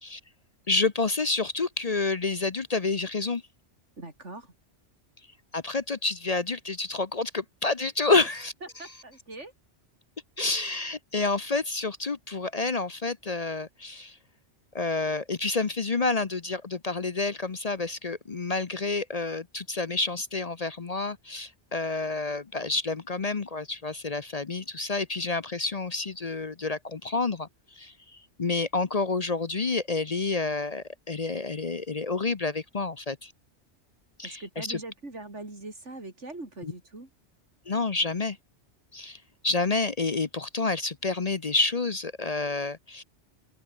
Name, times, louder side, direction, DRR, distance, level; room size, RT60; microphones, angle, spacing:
voice 1, 0.7-3.4 5.5-8.5 10.4-14.2 14.7-33.3 34.2-34.8 36.6-36.7 37.7-38.4 38.9-43.0, left 3 dB, 35° left, 0.9 m, -29 dB
voice 2, 4.0-4.5 8.1-8.3 8.8-9.5 34.2-37.1, right 2 dB, 85° right, 5.1 m, -41 dB
open air
omnidirectional pair, 1.2 m